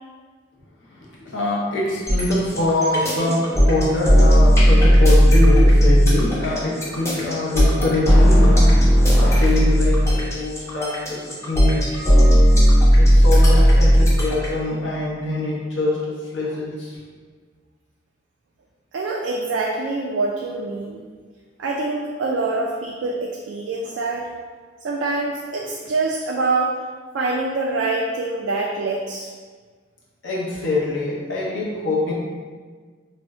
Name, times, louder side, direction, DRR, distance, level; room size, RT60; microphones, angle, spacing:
voice 1, 1.3-8.7 9.0-11.2 11.5-12.4 13.0-17.0 30.2-32.1, left 2 dB, 80° left, -5 dB, 0.7 m, -24 dB
sound 1, 2.1-14.5, equal, 15° left, 0.5 m, -14 dB
voice 2, 18.9-21.1 21.6-24.3 24.8-26.8 27.1-29.3, right 3 dB, 85° right, -1 dB, 0.3 m, -25 dB
2.5 x 2.1 x 3.4 m, 1.5 s
head